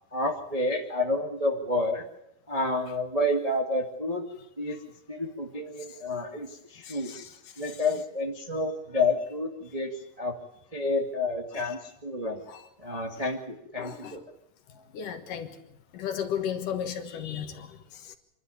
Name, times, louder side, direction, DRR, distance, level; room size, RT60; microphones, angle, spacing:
voice 1, 0.1-2.0 2.5-4.2 4.6-4.8 5.1-7.1 7.6-9.9 10.2-10.3 10.7-12.4 12.8-14.2, left 2 dB, 45° right, 1 dB, 0.4 m, -29 dB
voice 2, 6.9-7.3 12.5-12.6 13.8-14.2 14.9-15.5 15.9-18.1, left 8 dB, 60° left, 7 dB, 2.6 m, -34 dB
26.0 x 12.5 x 9.7 m, 0.83 s
omnidirectional pair, 4.7 m